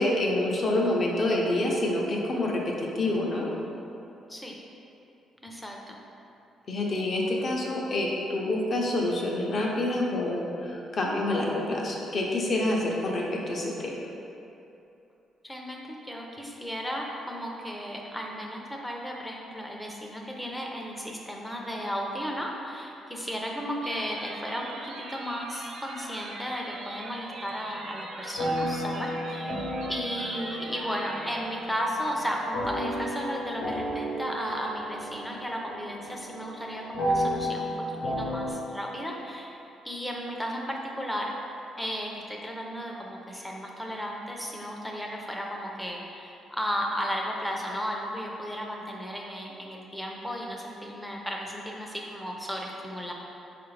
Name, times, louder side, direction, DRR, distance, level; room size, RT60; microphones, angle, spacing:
voice 1, 0.0-3.5 6.7-13.9, left 1 dB, 45° left, -2 dB, 0.6 m, -27 dB
voice 2, 5.4-6.0 15.4-29.6 29.9-39.6 39.8-41.3 41.8-53.1, equal, 5° left, -1 dB, 0.5 m, -34 dB
sound 1, 23.8-31.4, right 2 dB, 70° right, 0.4 m, -42 dB
sound 2, 28.4-38.5, equal, 80° left, 0.8 m, -33 dB
4.4 x 2.5 x 3.2 m, 2.8 s
cardioid pair, 90°, 0 cm